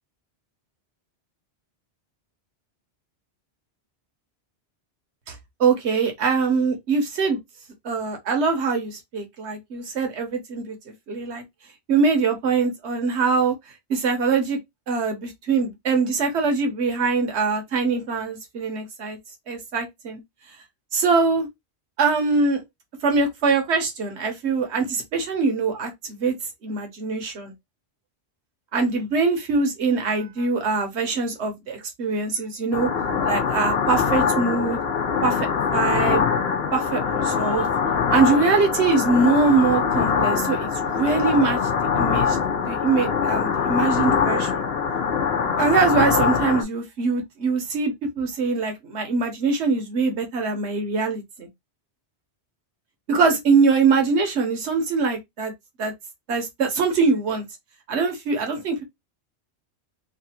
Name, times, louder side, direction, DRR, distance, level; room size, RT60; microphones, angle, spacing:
voice 1, 5.6-7.4 7.8-10.8 11.1-11.4 11.9-13.5 13.9-14.6 14.9-19.2 19.5-20.2 20.9-21.5 22.0-22.6 23.0-26.3 26.6-27.5 28.7-32.9 33.2-34.8 35.2-36.2 36.7-37.7 38.1-41.6 42.0-42.4 42.6-44.6 45.6-51.5 53.1-55.5 55.8-55.9 56.3-57.4 57.9-58.8, right 4 dB, 80° right, 1.2 m, -23 dB
sound 1, 32.7-46.6, left 6 dB, 65° left, 0.9 m, -23 dB
3.2 x 2.4 x 2.8 m
omnidirectional pair, 1.1 m